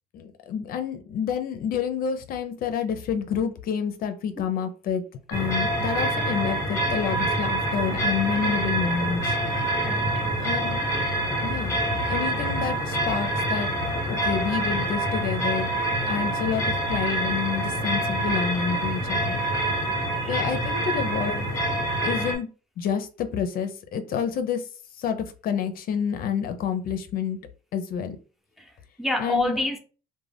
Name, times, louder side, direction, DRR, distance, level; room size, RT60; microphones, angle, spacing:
voice 1, 0.1-5.0 5.3-9.4 10.4-10.8 11.4-11.8 12.1-13.7 14.0-15.7 16.0-19.4 20.3-21.5 22.0-22.5 22.8-24.6 25.0-27.4 27.7-28.2 29.2-29.5, left 7 dB, 60° left, 0.5 m, -28 dB
sound 1, 5.3-22.4, right 1 dB, 15° left, 0.9 m, -26 dB
voice 2, 9.8-10.3 20.2-20.5 28.6-29.8, left 2 dB, ahead, 0.5 m, -29 dB
2.4 x 2.1 x 3.3 m
cardioid pair, 110°, 17 cm